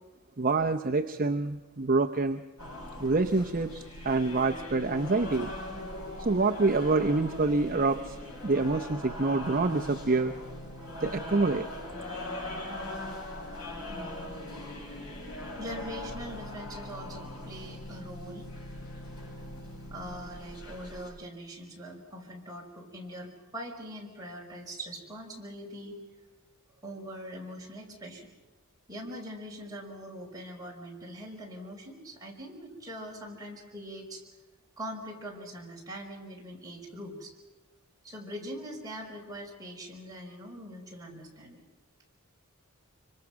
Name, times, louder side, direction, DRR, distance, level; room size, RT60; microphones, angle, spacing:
voice 1, 0.4-2.4 3.0-3.7 4.0-5.5 6.2-8.2 8.4-10.3 11.0-11.7, right 3 dB, 40° right, 5 dB, 0.7 m, -26 dB
sound 1, 2.6-21.1, left 1 dB, 80° left, 7.4 m, -40 dB
voice 2, 13.9-14.4 15.6-18.5 18.9-19.0 19.9-26.0 26.8-28.3 28.9-34.2 34.8-37.3 38.0-41.6, equal, 15° right, -2 dB, 5.1 m, -42 dB
25.5 x 25.0 x 6.0 m, 1.2 s
head